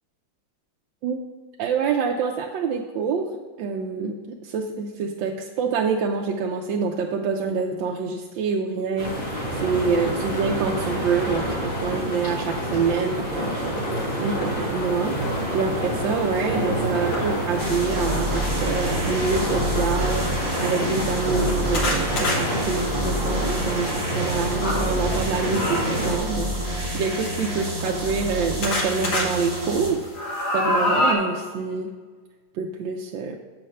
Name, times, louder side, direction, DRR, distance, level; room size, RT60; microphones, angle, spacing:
voice 1, 1.6-3.3 3.6-30.0 30.5-31.9 32.5-33.4, right 5 dB, 80° right, 1 dB, 1.3 m, -26 dB
sound 1, 9.0-26.2, equal, 35° left, 1.9 m, -28 dB
sound 2, 15.2-15.3 15.8-17.8 18.8-19.2 19.8-19.9 20.2-20.3 20.9-24.9 25.5-26.1 27.1-28.3 28.6-29.2 29.7-31.1, left 1 dB, 60° left, 1.8 m, -28 dB
sound 3, 17.6-29.9, equal, 20° right, 2.2 m, -28 dB
7.9 x 4.4 x 6.4 m, 1.4 s
omnidirectional pair, 2.1 m